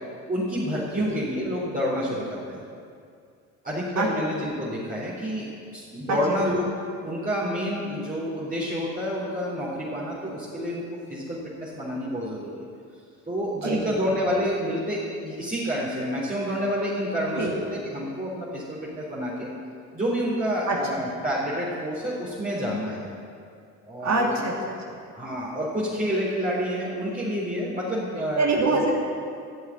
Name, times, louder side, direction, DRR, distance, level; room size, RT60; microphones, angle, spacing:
voice 1, 0.3-2.6 3.6-5.5 5.7-6.7 7.0-10.8 11.1-12.7 13.3-19.5 19.9-23.1 23.8-24.4 25.1-28.8, equal, 20° right, -7 dB, 4.1 m, -28 dB
voice 2, 6.1-6.4 13.5-13.9 17.4-17.5 20.7-20.8 24.0-25.0 28.3-28.9, right 3 dB, 45° right, 0 dB, 2.6 m, -25 dB
14.0 x 7.5 x 9.1 m, 2.3 s
hypercardioid pair, 65°, 38 cm